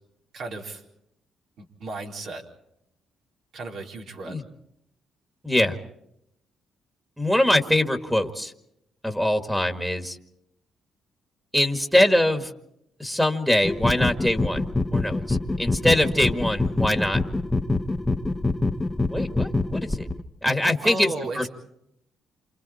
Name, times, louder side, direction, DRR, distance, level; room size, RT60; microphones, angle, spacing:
voice 1, 0.3-0.8 1.6-2.4 3.5-4.4 20.8-21.5, right 2 dB, 70° right, 0 dB, 4.2 m, -34 dB
voice 2, 5.4-5.8 7.2-8.5 9.0-10.2 11.5-12.5 13.0-17.2 19.1-20.1 20.4-21.5, left 1 dB, ahead, 5 dB, 2.0 m, -23 dB
sound 1, 13.6-20.2, left 2 dB, 15° left, 1.1 m, -25 dB
28.5 x 27.0 x 4.4 m, 0.79 s
cardioid pair, 90°, 0 cm